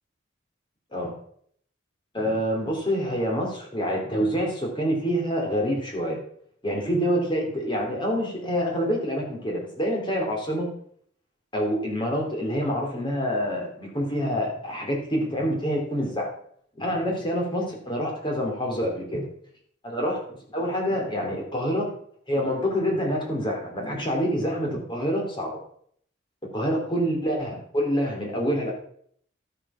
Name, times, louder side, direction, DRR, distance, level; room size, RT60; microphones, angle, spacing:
voice 1, 2.1-6.2 6.6-10.7 11.5-16.3 16.8-19.3 19.8-20.2 20.5-21.9 22.3-25.6 26.5-28.7, equal, 25° left, 0 dB, 3.4 m, -26 dB
12.0 x 7.0 x 5.8 m, 0.63 s
head